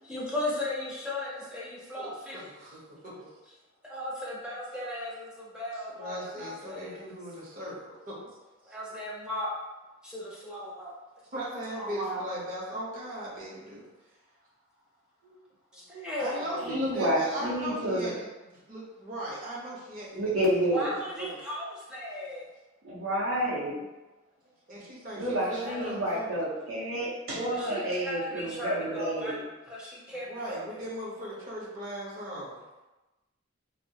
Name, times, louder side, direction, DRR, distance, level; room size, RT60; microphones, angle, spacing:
voice 1, 0.0-2.4 3.8-7.1 8.7-9.5 10.0-11.0 11.7-12.3 15.7-16.8 20.7-22.5 25.6-25.9 27.6-30.8, left 1 dB, 5° right, -6 dB, 0.4 m, -36 dB
voice 2, 2.0-3.1 6.0-8.2 11.3-13.8 15.2-15.4 15.7-15.8 16.2-20.9 21.2-21.4 24.7-26.4 30.2-32.6, right 1 dB, 45° right, -5 dB, 0.7 m, -38 dB
voice 3, 16.6-18.1 20.1-20.9 22.8-23.8 25.2-29.4, right 1 dB, 80° right, -5 dB, 0.7 m, -29 dB
2.2 x 2.0 x 2.7 m, 1.1 s
head